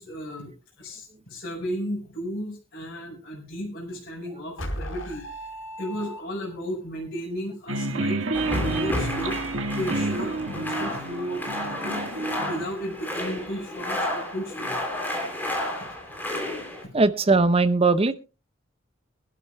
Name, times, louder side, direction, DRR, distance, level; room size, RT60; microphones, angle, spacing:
voice 1, 0.0-5.2 5.8-12.0 12.4-14.8, equal, 50° left, -4 dB, 5.1 m, -34 dB
sound 1, 4.6-6.7, equal, 90° left, 4.1 m, -36 dB
sound 2, 7.7-12.6, right 2 dB, 85° right, 1.6 m, -29 dB
sound 3, 8.3-16.8, left 1 dB, 10° left, 3.2 m, -31 dB
voice 2, 16.9-18.1, right 3 dB, 30° right, 13 dB, 0.7 m, -19 dB
23.5 x 12.0 x 2.3 m, 0.30 s
head